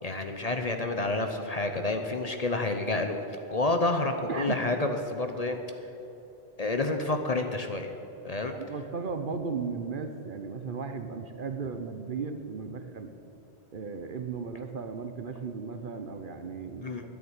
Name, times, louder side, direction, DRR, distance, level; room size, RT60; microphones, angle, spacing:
voice 1, 0.0-3.2 3.5-5.6 6.6-7.9 8.2-8.5 16.8-17.0, left 2 dB, 40° left, 5 dB, 0.8 m, -29 dB
voice 2, 8.6-13.1 13.7-16.9, right 5 dB, 50° right, 8 dB, 0.9 m, -35 dB
10.5 x 9.8 x 8.9 m, 2.9 s
omnidirectional pair, 1.2 m